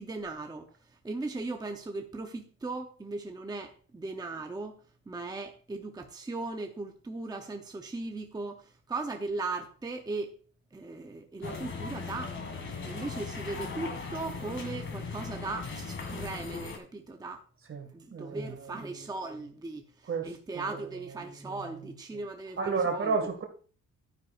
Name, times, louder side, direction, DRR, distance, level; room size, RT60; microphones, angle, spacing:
voice 1, 0.0-4.8 5.1-10.4 10.7-12.4 12.8-17.4 17.9-23.3, right 3 dB, 10° right, 0.8 m, -38 dB
sound 1, 11.4-16.8, left 4 dB, 35° left, 2.2 m, -38 dB
voice 2, 17.7-18.8 20.1-21.6 22.6-23.4, right 4 dB, 40° right, 2.1 m, -33 dB
11.5 x 9.6 x 2.5 m
cardioid pair, 140°, 33 cm